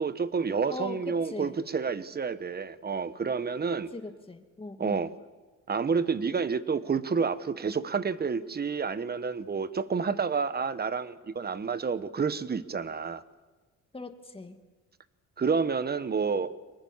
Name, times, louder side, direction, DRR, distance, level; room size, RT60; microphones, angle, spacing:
voice 1, 0.0-3.9 4.8-5.1 5.7-13.2 15.4-16.6, right 5 dB, 30° right, 1.2 m, -29 dB
voice 2, 0.7-1.6 3.9-5.0 13.9-14.6, left 3 dB, 20° left, 2.3 m, -40 dB
24.5 x 20.0 x 7.3 m
cardioid pair, 90°, 30 cm